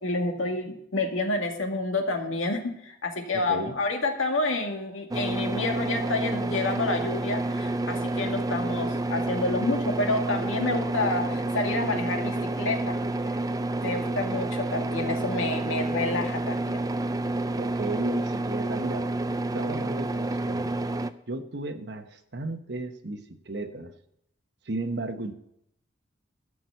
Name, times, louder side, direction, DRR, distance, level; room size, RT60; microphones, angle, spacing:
voice 1, 0.0-13.0 13.3-13.4 13.8-16.8, left 2 dB, 80° left, 3 dB, 1.9 m, -29 dB
voice 2, 3.3-3.7 17.6-19.1 19.5-20.7 21.3-23.9 24.6-25.3, right 2 dB, 55° right, 8 dB, 1.0 m, -34 dB
sound 1, 5.1-21.1, right 2 dB, 20° right, 0.4 m, -29 dB
13.5 x 6.1 x 8.2 m, 0.78 s
head